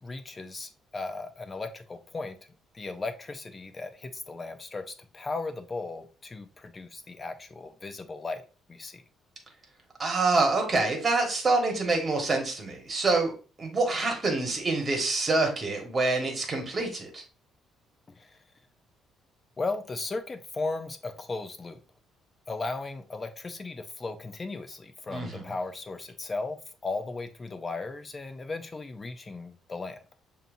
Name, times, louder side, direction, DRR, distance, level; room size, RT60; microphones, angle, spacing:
voice 1, 0.0-2.4 2.7-8.4 8.7-9.0 18.2-18.3 19.6-21.8 22.5-26.6 26.8-30.0, left 3 dB, 25° left, 8 dB, 0.6 m, -36 dB
voice 2, 10.0-13.3 13.6-17.2 25.1-25.5, right 3 dB, 30° right, 2 dB, 1.5 m, -26 dB
6.6 x 2.8 x 2.6 m, 0.35 s
cardioid pair, 110°, 0 cm